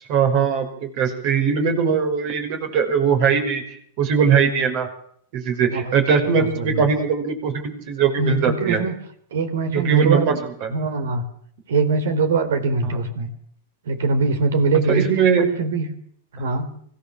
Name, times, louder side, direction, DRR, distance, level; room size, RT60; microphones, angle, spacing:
voice 1, 0.1-3.6 4.0-4.9 5.3-8.8 9.7-10.3 10.6-10.7 14.9-15.5, right 6 dB, 55° right, 6 dB, 5.7 m, -20 dB
voice 2, 6.4-6.9 8.2-9.0 9.3-10.4 10.7-11.2 11.7-13.3 13.9-15.0 15.4-15.9 16.3-16.7, right 3 dB, 75° right, 11 dB, 3.8 m, -22 dB
24.5 x 16.0 x 7.3 m, 0.64 s
hypercardioid pair, 105°, 0 cm